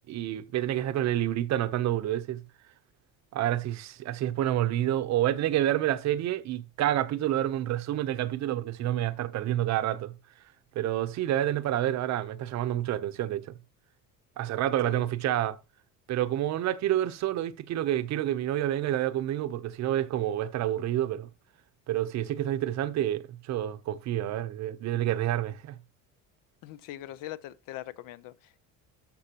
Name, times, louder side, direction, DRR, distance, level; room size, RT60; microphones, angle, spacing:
voice 1, 0.1-2.4 3.3-10.1 10.7-13.5 14.4-15.6 16.1-21.3 21.9-25.8, right 12 dB, 50° right, 0.8 m, -28 dB
voice 2, 26.6-28.7, left 14 dB, 65° left, 0.7 m, -42 dB
13.0 x 5.5 x 2.9 m
cardioid pair, 160°, 35 cm